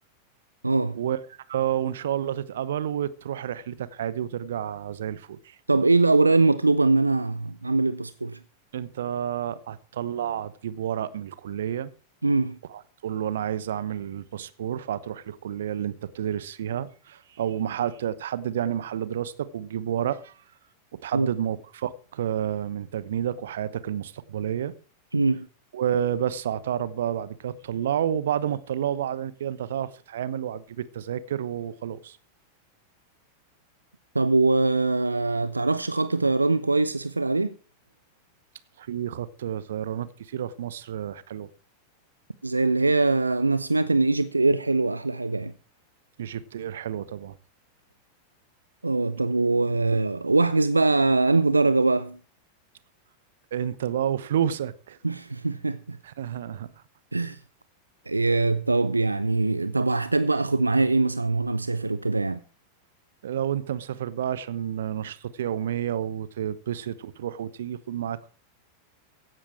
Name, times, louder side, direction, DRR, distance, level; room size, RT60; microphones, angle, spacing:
voice 1, 0.6-1.0 5.7-8.4 12.2-12.6 21.1-21.3 25.1-25.5 34.1-37.5 42.4-45.5 48.8-52.2 55.0-56.0 57.1-57.4 58.1-62.4, right 3 dB, 80° right, 0.6 m, -22 dB
voice 2, 1.5-5.6 8.7-11.9 12.7-20.3 20.9-24.7 25.7-32.2 38.8-41.5 46.2-47.4 53.5-55.0 56.0-56.7 63.2-68.3, right 10 dB, 60° right, 1.0 m, -30 dB
15.5 x 11.0 x 4.5 m
figure-of-eight pair, 90°, 0 cm